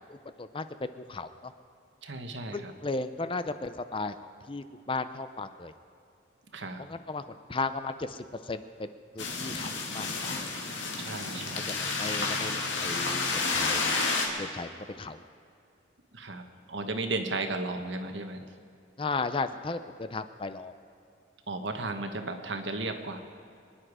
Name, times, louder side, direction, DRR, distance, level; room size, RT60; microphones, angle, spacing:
voice 1, 0.1-1.5 2.5-4.2 4.5-5.7 6.8-8.9 9.1-10.5 11.7-13.9 14.4-15.2 19.0-20.7, left 3 dB, 25° left, 11 dB, 0.5 m, -35 dB
voice 2, 2.0-2.7 6.5-6.9 11.0-11.8 16.1-16.4 16.7-18.4 21.5-23.2, right 2 dB, 70° right, 6 dB, 1.3 m, -34 dB
sound 1, 9.2-14.3, left 4 dB, 75° left, 2.2 m, -30 dB
24.5 x 10.0 x 4.9 m, 2.4 s
head